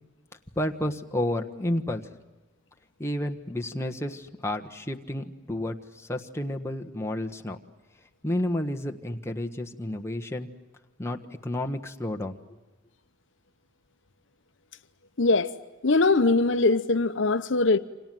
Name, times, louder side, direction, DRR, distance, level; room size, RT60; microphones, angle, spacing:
voice 1, 0.6-2.1 3.0-7.6 8.2-10.5 11.0-12.4, left 1 dB, 15° left, 1.4 m, -31 dB
voice 2, 15.2-15.5 15.8-17.8, left 3 dB, 60° left, 0.8 m, -21 dB
29.0 x 26.0 x 7.7 m
head